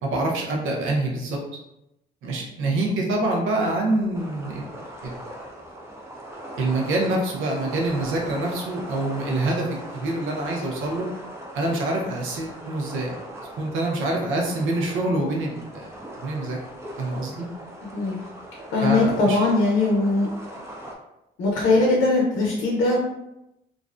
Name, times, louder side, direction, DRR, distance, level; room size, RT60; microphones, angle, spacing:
voice 1, 0.0-1.4 2.2-4.7 5.0-5.1 6.6-9.7 9.9-11.1 11.5-13.1 13.6-16.6 17.0-17.5 18.8-19.4, right 2 dB, 85° right, 0 dB, 0.6 m, -26 dB
sound 1, 4.1-20.9, right 1 dB, 15° right, 0.5 m, -40 dB
voice 2, 17.8-18.2 18.7-20.3 21.4-23.0, left 2 dB, 80° left, -3 dB, 0.6 m, -20 dB
2.5 x 2.0 x 2.4 m, 0.87 s
cardioid pair, 90°, 20 cm